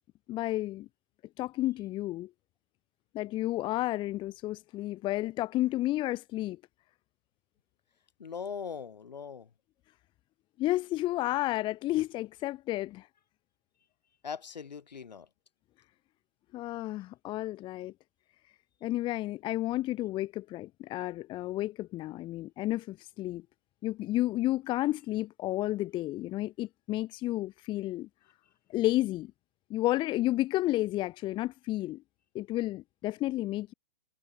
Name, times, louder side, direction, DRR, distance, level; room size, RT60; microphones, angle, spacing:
voice 1, 0.3-0.9 1.4-2.3 3.1-6.6 10.6-13.1 16.5-17.9 18.8-23.4 23.8-28.1 28.7-29.3 29.7-32.0 32.3-33.7, left 16 dB, 20° left, 1.3 m, -31 dB
voice 2, 8.2-9.5 14.2-15.3, left 6 dB, 80° left, 7.9 m, -40 dB
hypercardioid pair, 140°, 21 cm